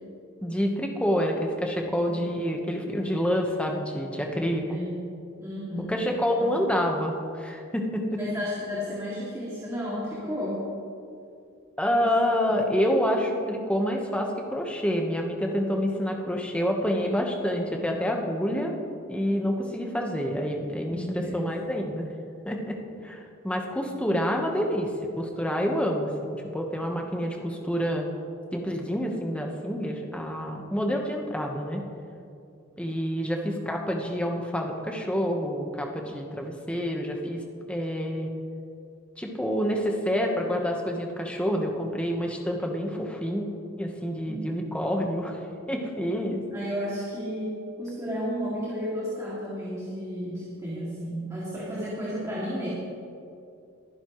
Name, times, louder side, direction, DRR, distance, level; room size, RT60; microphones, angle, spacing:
voice 1, 0.4-4.6 5.9-8.2 11.8-18.7 19.1-22.1 22.5-22.8 23.0-24.9 25.2-28.1 28.5-31.8 32.8-37.4 37.7-38.3 39.2-43.5 43.8-45.4 45.7-46.4, equal, 5° left, 1 dB, 1.2 m, -28 dB
voice 2, 1.8-2.2 4.7-5.1 5.4-5.9 6.4-6.5 8.2-10.6 11.9-12.0 12.5-12.6 20.9-21.5 44.3-44.4 46.5-52.7, equal, 15° right, -8 dB, 2.5 m, -33 dB
22.5 x 10.5 x 3.2 m, 2.5 s
head